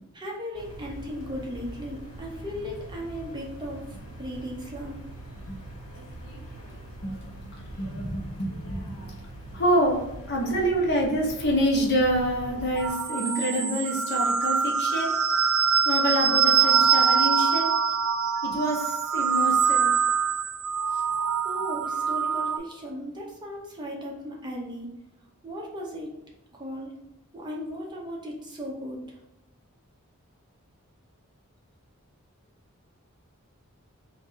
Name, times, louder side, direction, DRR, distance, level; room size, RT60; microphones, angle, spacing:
voice 1, 0.1-3.9 4.2-5.0 15.8-15.9 21.4-24.9 25.4-26.1 26.6-26.9 27.3-29.1, equal, 20° right, -2 dB, 0.6 m, -36 dB
sound 1, 0.5-12.9, right 1 dB, 80° left, 1.2 m, -42 dB
voice 2, 7.5-9.2 9.5-10.0 10.3-15.1 15.8-17.7 18.4-19.9, equal, 50° left, -1 dB, 0.9 m, -27 dB
sound 2, 12.8-22.6, right 6 dB, 70° right, 0.5 m, -24 dB
3.6 x 2.6 x 4.2 m, 0.92 s
head